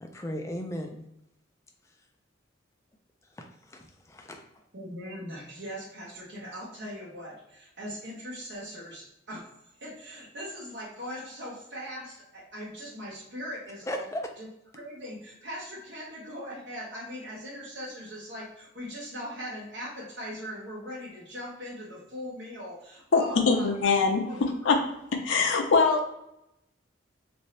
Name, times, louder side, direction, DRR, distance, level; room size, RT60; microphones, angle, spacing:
voice 1, 0.0-1.0 3.4-4.4 13.9-14.3, equal, 15° left, 3 dB, 0.4 m, -36 dB
voice 2, 4.7-9.5 9.8-14.1 14.4-14.5 14.7-23.8 24.3-24.4, equal, 60° right, -6 dB, 0.9 m, -40 dB
voice 3, 23.1-24.2 24.6-24.8 25.2-26.1, left 4 dB, 80° left, 3 dB, 0.5 m, -22 dB
2.6 x 2.6 x 3.1 m, 0.82 s
head